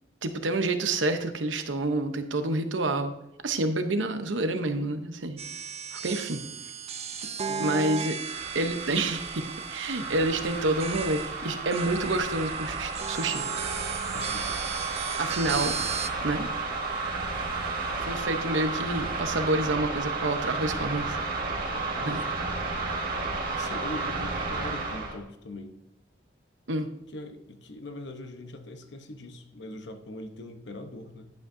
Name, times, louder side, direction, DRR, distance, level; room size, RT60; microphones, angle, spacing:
voice 1, 0.2-3.1 3.4-5.4 5.9-6.4 7.6-8.2 8.5-13.4 15.2-15.7 16.2-16.5 18.0-21.2 22.1-22.2 26.7-26.9, right 2 dB, 85° right, 8 dB, 0.9 m, -28 dB
sound 1, 5.4-16.1, right 6 dB, 35° right, 0.6 m, -36 dB
sound 2, 8.1-25.2, right 3 dB, 50° right, 1.7 m, -32 dB
voice 2, 14.1-14.5 21.7-22.2 23.5-25.8 27.1-31.3, left 1 dB, 65° left, 7 dB, 0.9 m, -41 dB
10.5 x 8.1 x 2.7 m, 0.89 s
head